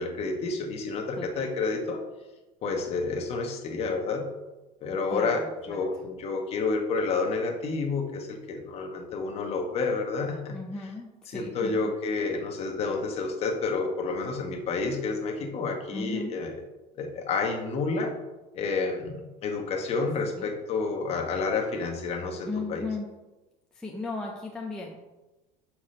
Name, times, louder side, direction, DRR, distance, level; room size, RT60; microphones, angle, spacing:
voice 1, 0.0-2.0 2.6-4.3 4.8-5.4 5.7-10.5 11.3-16.5 17.0-18.1 18.5-22.8, left 4 dB, 30° left, 2 dB, 1.1 m, -29 dB
voice 2, 1.2-1.5 5.1-5.8 10.5-11.9 15.9-16.3 20.4-20.5 22.5-23.1 23.7-25.1, left 3 dB, 5° left, -1 dB, 0.4 m, -36 dB
5.9 x 4.7 x 6.4 m, 1.1 s
cardioid pair, 175°, 20 cm